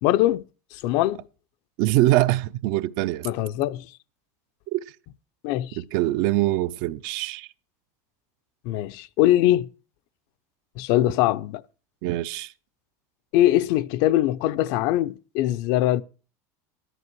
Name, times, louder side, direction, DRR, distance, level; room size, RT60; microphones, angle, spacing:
voice 1, 0.0-0.4 0.7-1.2 3.2-3.8 5.4-5.8 8.6-9.7 10.8-11.6 13.3-16.0, left 14 dB, 55° left, 0.6 m, -22 dB
voice 2, 1.8-3.3 4.7-4.8 5.8-7.5 12.0-12.5, right 16 dB, 55° right, 0.6 m, -23 dB
13.0 x 11.0 x 4.6 m
supercardioid pair, 150°, 8 cm